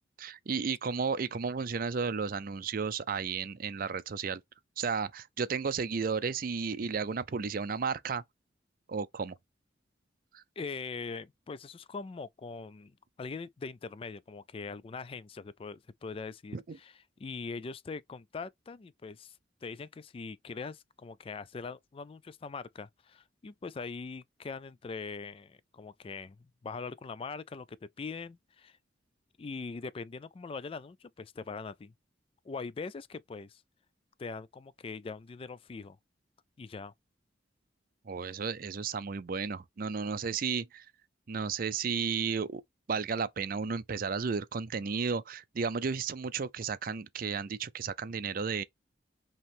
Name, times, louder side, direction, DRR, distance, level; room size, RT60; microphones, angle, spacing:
voice 1, 0.2-4.4 4.8-8.2 8.9-9.4 10.3-10.4 16.5-16.8 38.1-40.9 41.3-42.6 42.9-48.6, right 5 dB, 50° right, 0.5 m, -33 dB
voice 2, 10.6-16.9 17.2-28.8 29.4-31.9 32.4-33.6 34.2-36.0 36.6-36.9, left 4 dB, 30° left, 0.3 m, -42 dB
5.2 x 3.0 x 3.4 m
head